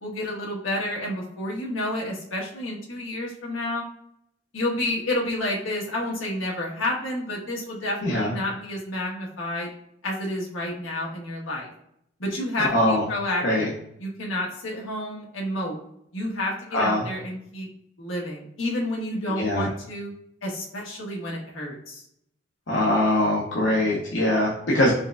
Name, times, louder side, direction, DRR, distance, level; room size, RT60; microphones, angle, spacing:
voice 1, 0.0-3.8 4.5-9.7 10.0-11.7 12.2-13.7 14.0-15.8 16.1-17.7 18.0-20.1 20.4-22.0 23.7-23.8, left 1 dB, 90° left, -2 dB, 1.3 m, -30 dB
voice 2, 8.0-8.3 12.6-13.0 13.4-13.7 16.7-17.1 19.3-19.7 22.7-24.9, left 1 dB, 70° left, -4 dB, 0.8 m, -22 dB
4.4 x 3.6 x 2.3 m, 0.74 s
head